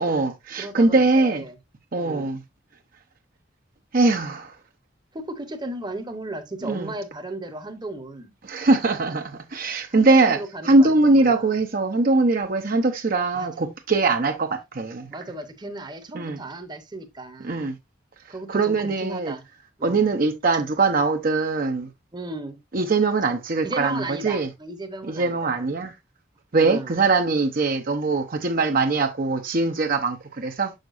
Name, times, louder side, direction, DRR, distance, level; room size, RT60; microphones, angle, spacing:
voice 1, 0.0-1.4 1.9-2.4 3.9-4.6 6.6-6.9 8.4-10.4 10.6-15.1 16.1-16.4 17.4-17.7 18.5-19.3 19.8-21.9 22.7-24.5 25.1-25.9 26.5-30.7, right 3 dB, 50° right, 0.7 m, -21 dB
voice 2, 0.6-1.6 2.0-2.3 5.1-8.3 9.9-11.6 13.3-13.5 15.1-17.7 18.3-19.4 19.8-20.1 22.1-22.6 23.6-25.9 26.6-26.9, right 2 dB, 25° right, 0.9 m, -35 dB
7.2 x 6.5 x 2.5 m
head